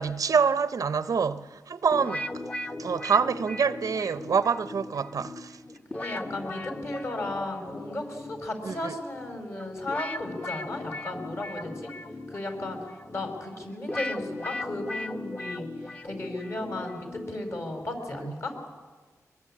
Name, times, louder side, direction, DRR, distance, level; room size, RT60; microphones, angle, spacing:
voice 1, 0.0-2.3 2.8-5.6 8.6-8.9 18.2-18.3, right 6 dB, 70° right, 0.6 m, -26 dB
sound 1, 1.9-17.8, left 2 dB, 20° left, 1.1 m, -38 dB
voice 2, 5.9-11.9 12.3-12.8 13.1-18.5, left 2 dB, 45° left, 4.7 m, -35 dB
23.5 x 21.5 x 8.5 m
wide cardioid pair, 115°, 6 cm